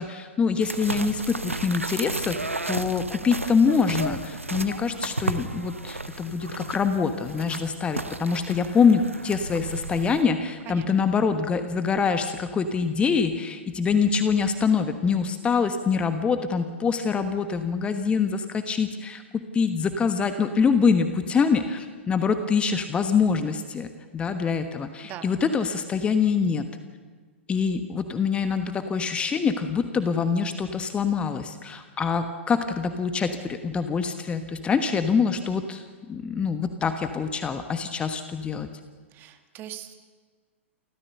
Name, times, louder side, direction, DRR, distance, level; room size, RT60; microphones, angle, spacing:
voice 1, 0.0-2.4 2.7-19.2 19.5-23.9 24.1-26.6 27.5-38.7, left 5 dB, 15° left, 9 dB, 1.2 m, -25 dB
sound 1, 0.6-10.2, right 2 dB, 85° right, 1.0 m, -33 dB
voice 2, 39.1-39.9, right 11 dB, 30° right, 7 dB, 1.9 m, -40 dB
29.0 x 14.5 x 6.8 m, 1.5 s
figure-of-eight pair, 105°, 7 cm